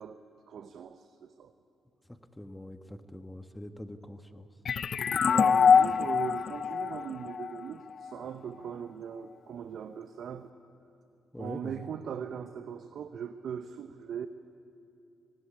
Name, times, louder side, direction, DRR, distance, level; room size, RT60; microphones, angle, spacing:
voice 1, 0.0-1.5 5.0-10.5 11.4-14.3, right 8 dB, 65° right, 10 dB, 0.7 m, -40 dB
voice 2, 2.1-4.5 11.3-11.8, left 1 dB, 10° left, 8 dB, 1.4 m, -44 dB
sound 1, 4.7-8.1, left 6 dB, 55° left, 0.5 m, -25 dB
18.0 x 16.5 x 10.0 m, 2.8 s
supercardioid pair, 55°, 0 cm